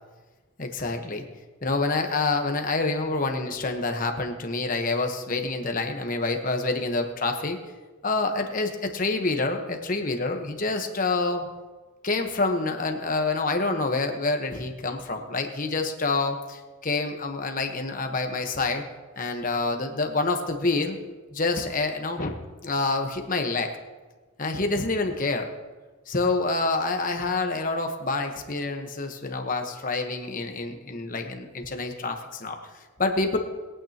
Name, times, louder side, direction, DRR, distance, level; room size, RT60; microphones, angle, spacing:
voice 1, 0.6-1.2 1.6-7.6 8.0-11.5 12.0-18.8 19.2-21.0 21.3-23.7 24.4-25.5 26.1-32.6 33.0-33.4, left 3 dB, 40° left, 4 dB, 1.2 m, -27 dB
22.0 x 9.0 x 2.9 m, 1.3 s
head